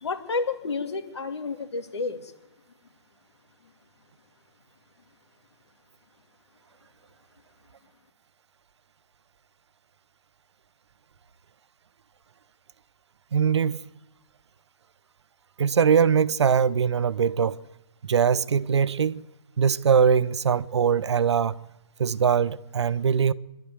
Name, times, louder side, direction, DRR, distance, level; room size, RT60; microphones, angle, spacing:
voice 1, 0.0-2.3, left 4 dB, 75° left, 2.8 m, -30 dB
voice 2, 13.3-13.8 15.6-17.6 18.0-19.2 19.6-21.6 22.0-23.3, right 7 dB, 75° right, 0.8 m, -22 dB
24.0 x 12.0 x 9.6 m
hypercardioid pair, 145°, 14 cm